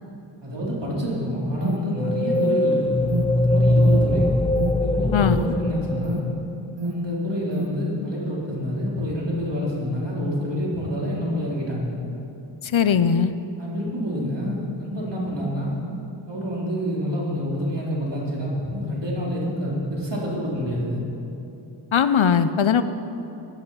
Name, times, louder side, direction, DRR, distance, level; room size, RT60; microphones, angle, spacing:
voice 1, 0.4-3.0 3.3-4.3 4.8-6.2 6.8-11.9 13.6-15.8 16.3-21.0, equal, 60° right, -5 dB, 4.1 m, -27 dB
Alarm, 1.0-7.7, right 1 dB, 85° right, 1.5 m, -31 dB
sound 1, 2.0-6.6, left 1 dB, 10° left, 0.4 m, -21 dB
voice 2, 12.6-13.3 21.9-22.8, left 7 dB, 70° left, 11 dB, 0.7 m, -19 dB
16.0 x 11.0 x 5.8 m, 2.9 s
wide cardioid pair, 45°, 49 cm